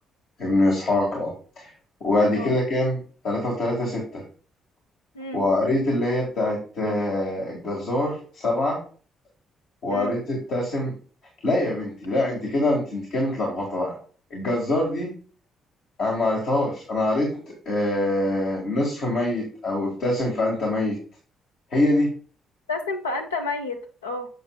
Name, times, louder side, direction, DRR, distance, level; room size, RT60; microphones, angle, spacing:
voice 1, 0.4-1.7 2.0-4.2 5.3-8.8 9.8-10.9 11.4-13.9 14.3-15.1 16.0-17.4 17.7-21.0 21.7-22.1, left 1 dB, 60° left, -3 dB, 1.8 m, -24 dB
voice 2, 22.7-24.3, left 3 dB, 85° left, 5 dB, 0.7 m, -30 dB
7.7 x 6.7 x 2.3 m, 0.39 s
figure-of-eight pair, 45°, 0 cm